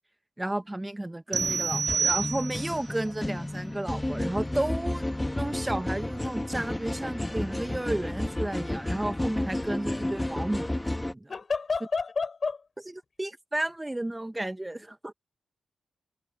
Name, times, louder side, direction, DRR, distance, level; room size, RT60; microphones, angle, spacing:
voice 1, 0.4-5.0 5.3-11.3 13.2-15.1, right 1 dB, 15° right, 1.0 m, -32 dB
sound 1, 1.3-11.1, left 1 dB, 10° left, 1.1 m, -32 dB
sound 2, 1.3-2.9, right 5 dB, 55° right, 0.7 m, -28 dB
voice 2, 11.3-12.7, left 4 dB, 45° left, 5.7 m, -30 dB
wide cardioid pair, 110°, 0 cm